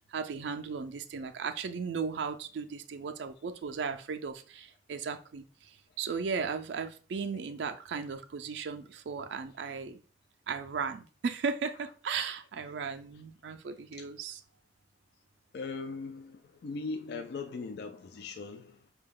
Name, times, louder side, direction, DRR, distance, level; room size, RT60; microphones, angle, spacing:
voice 1, 0.1-5.4 6.0-10.0 10.5-14.4, right 5 dB, 70° right, 0.4 m, -36 dB
voice 2, 15.5-18.9, left 4 dB, 60° left, 0.3 m, -39 dB
4.2 x 2.3 x 3.6 m
head